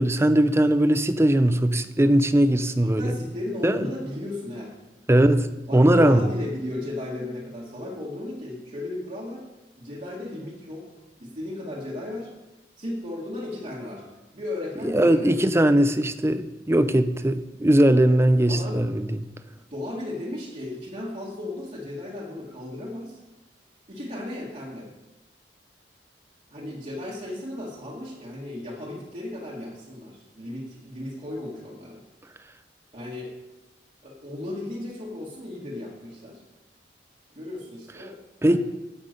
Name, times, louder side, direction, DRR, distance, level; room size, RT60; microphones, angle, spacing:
voice 1, 0.0-3.1 3.6-3.8 5.1-5.5 5.7-6.3 14.8-19.2 38.4-38.6, right 1 dB, 15° right, 11 dB, 0.5 m, -20 dB
voice 2, 2.8-4.8 5.7-9.4 9.8-10.9 11.2-12.3 12.8-14.0 14.3-15.5 18.5-18.9 19.7-23.2 23.9-24.9 26.5-32.0 32.9-33.3 34.0-36.4 37.3-38.2 38.5-38.6, left 1 dB, 40° right, -6 dB, 1.8 m, -35 dB
16.0 x 6.0 x 5.3 m, 1.1 s
head